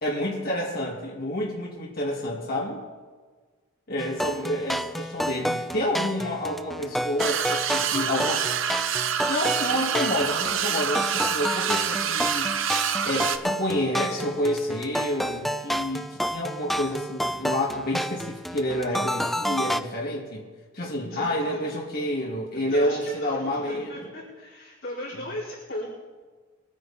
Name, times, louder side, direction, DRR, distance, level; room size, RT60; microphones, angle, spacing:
voice 1, 0.0-2.8 3.9-8.5 9.3-12.5 13.0-20.4 20.7-24.1 25.1-25.3, left 1 dB, 50° left, -3 dB, 2.4 m, -29 dB
sound 1, 4.0-19.8, equal, ahead, 0.5 m, -30 dB
sound 2, 7.2-13.4, right 8 dB, 70° right, 0.7 m, -27 dB
voice 2, 21.0-21.6 22.5-25.9, left 1 dB, 65° left, -12 dB, 4.6 m, -36 dB
23.0 x 9.6 x 4.4 m, 1.4 s
head